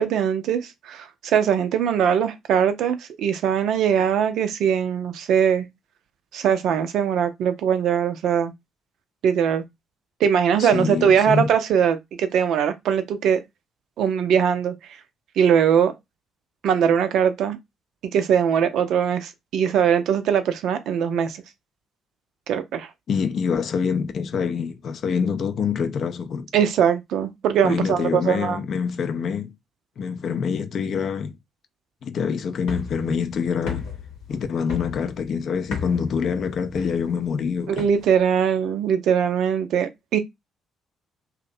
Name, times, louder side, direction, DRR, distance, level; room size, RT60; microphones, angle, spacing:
voice 1, 0.0-5.7 6.3-8.5 9.2-9.6 10.2-13.4 14.0-14.7 15.4-15.9 16.6-17.6 18.1-21.4 22.5-22.9 26.5-28.6 37.7-40.2, right 8 dB, 60° right, 0.4 m, -21 dB
voice 2, 10.6-11.5 23.1-26.5 27.6-29.6 30.0-31.4 32.0-33.9 34.3-37.9, left 6 dB, 55° left, 0.4 m, -26 dB
sound 1, 32.6-38.3, left 5 dB, 70° left, 0.8 m, -36 dB
2.5 x 2.0 x 2.6 m
figure-of-eight pair, 45°, 0 cm